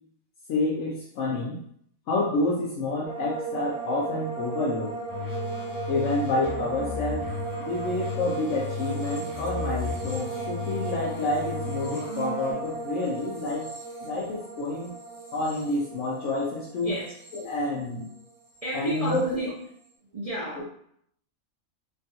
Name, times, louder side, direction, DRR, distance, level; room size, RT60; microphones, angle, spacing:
voice 1, 0.5-1.6 2.1-5.0 5.9-7.3 7.7-13.7 14.0-14.9 15.3-16.9 17.3-18.1 18.7-19.2 20.6-20.7, left 2 dB, 65° left, -4 dB, 0.8 m, -28 dB
sound 1, 3.0-18.3 18.5-19.2, right 4 dB, 20° left, 1.0 m, -36 dB
sound 2, 5.1-12.5, left 3 dB, 20° right, 0.6 m, -35 dB
voice 2, 18.6-19.5 20.1-20.6, right 1 dB, 70° right, -6 dB, 0.3 m, -31 dB
3.4 x 2.3 x 2.7 m, 0.69 s
omnidirectional pair, 1.5 m